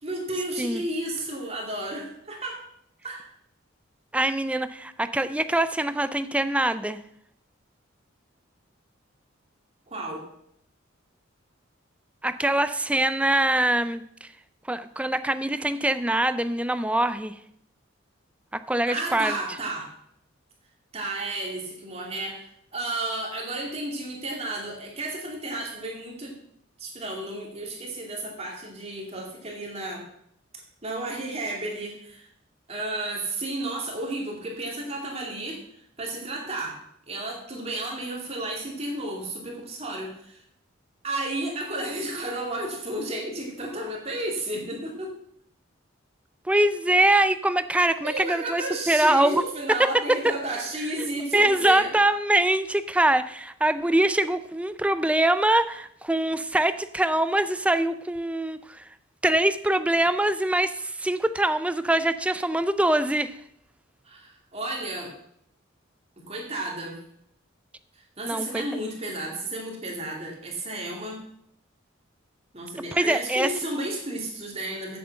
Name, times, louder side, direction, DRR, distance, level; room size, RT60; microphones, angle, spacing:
voice 1, 0.0-2.6 3.0-3.3 9.9-10.2 18.9-19.9 20.9-26.4 26.8-30.0 30.8-32.3 32.7-35.6 36.0-36.8 37.1-40.4 41.0-45.1 48.0-51.9 64.0-65.1 66.2-67.0 67.9-71.2 72.5-75.0, right 2 dB, 30° right, -1 dB, 2.4 m, -32 dB
voice 2, 4.1-7.0 12.2-14.3 14.7-17.3 18.5-19.4 46.5-49.4 50.1-50.3 51.0-51.1 51.3-58.9 59.2-63.3 68.2-68.6 72.9-73.5, right 1 dB, 5° right, 12 dB, 0.4 m, -23 dB
8.1 x 7.6 x 7.6 m, 0.73 s
head